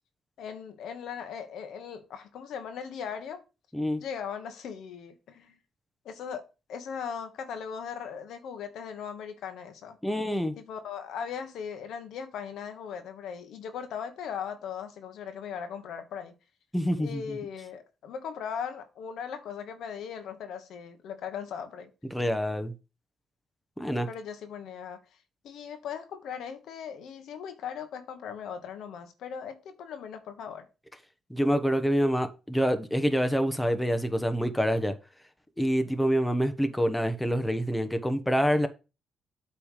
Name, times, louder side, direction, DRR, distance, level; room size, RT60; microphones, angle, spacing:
voice 1, 0.4-3.4 4.0-5.6 6.0-6.4 6.7-10.0 10.6-16.3 17.0-21.9 24.1-25.0 25.4-30.7, left 7 dB, 75° left, 1.3 m, -38 dB
voice 2, 10.0-10.5 16.7-17.2 22.1-22.7 23.8-24.1 31.3-34.9 35.6-38.7, equal, 5° left, 1.1 m, -26 dB
8.5 x 3.4 x 6.5 m
cardioid pair, 90°, 0 cm